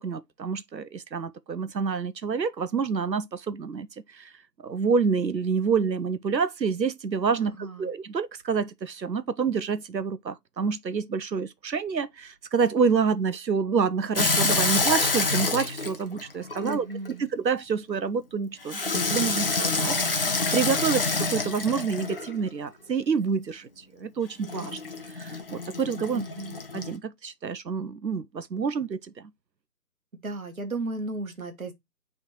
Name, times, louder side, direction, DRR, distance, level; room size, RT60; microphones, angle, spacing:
voice 1, 0.0-4.3 4.6-16.9 17.3-24.8 25.2-26.2 26.7-29.1, right 5 dB, 85° right, 0.8 m, -28 dB
voice 2, 7.4-7.9 16.6-17.3 26.1-26.6 30.2-31.7, right 2 dB, 55° right, 1.5 m, -35 dB
Water tap faucet / Sink (filling or washing), 14.1-17.1 18.7-22.4 24.4-27.0, left 3 dB, 35° left, 0.8 m, -27 dB
9.2 x 3.6 x 3.0 m
figure-of-eight pair, 145°, 50 cm